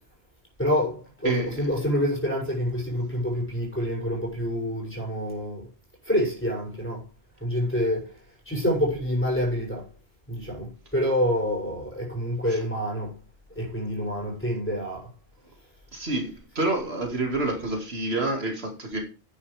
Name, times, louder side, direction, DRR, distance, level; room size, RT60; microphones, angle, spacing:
voice 1, 0.6-5.7 6.0-7.0 7.4-8.1 8.4-9.9 10.3-13.1 13.5-15.1, equal, 10° left, 6.8 m, -27 dB
voice 2, 1.2-1.7 12.5-12.6 15.9-19.0, right 2 dB, 70° right, 2.4 m, -28 dB
11.0 x 9.8 x 3.4 m
omnidirectional pair, 1.1 m